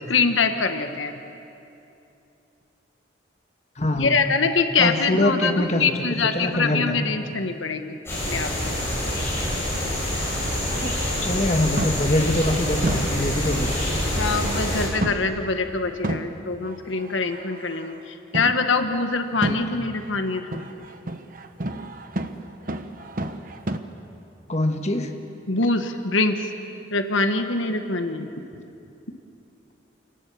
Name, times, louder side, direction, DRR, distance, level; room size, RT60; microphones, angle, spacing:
voice 1, 0.1-1.1 3.9-8.0 8.3-8.7 14.2-20.4 25.5-26.4 26.9-28.3, left 4 dB, 85° left, 7 dB, 1.3 m, -24 dB
voice 2, 3.8-4.2 4.8-7.0 10.8-10.9 11.2-13.7 19.4-19.8 24.5-25.1, left 1 dB, 35° left, 4 dB, 1.4 m, -24 dB
sound 1, 8.1-14.9, left 1 dB, 15° left, 7.1 m, -26 dB
sound 2, 9.9-11.4 11.8-12.3 12.8-14.7 15.0-15.4 16.0-18.0 18.3-18.7 19.4-23.8, right 1 dB, 45° right, 1.0 m, -32 dB
28.5 x 18.0 x 7.0 m, 2.8 s
head